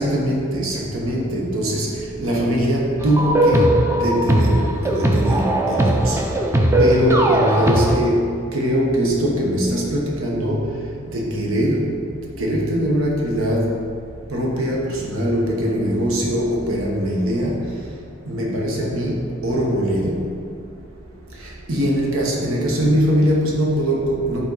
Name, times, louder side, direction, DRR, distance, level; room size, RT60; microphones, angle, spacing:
voice 1, 0.0-6.2 6.8-10.7 11.1-12.0 12.4-13.7 14.3-17.7 18.3-20.3 21.4-24.5, equal, 80° right, -3 dB, 1.2 m, -21 dB
sound 1, 3.0-8.0, right 1 dB, 10° right, 0.4 m, -18 dB
7.2 x 4.2 x 4.0 m, 2.4 s
head